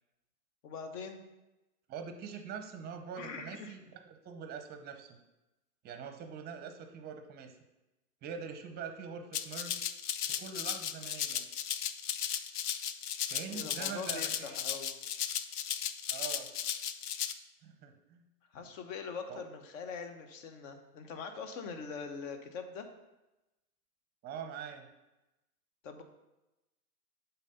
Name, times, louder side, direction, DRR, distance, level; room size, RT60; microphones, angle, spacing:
voice 1, 0.6-1.2 3.2-3.7 13.5-14.9 18.5-22.9 25.8-26.0, left 5 dB, 55° left, 6 dB, 1.1 m, -43 dB
voice 2, 1.9-5.2 5.8-7.6 8.2-9.8 10.3-11.4 13.3-14.6 16.1-16.5 17.6-18.2 19.3-19.4 24.2-24.9, right 6 dB, 20° right, 6 dB, 0.6 m, -44 dB
Rattle (instrument), 9.3-17.3, left 9 dB, 85° left, 0.6 m, -36 dB
7.3 x 4.2 x 5.5 m, 1.0 s
hypercardioid pair, 130°, 45 cm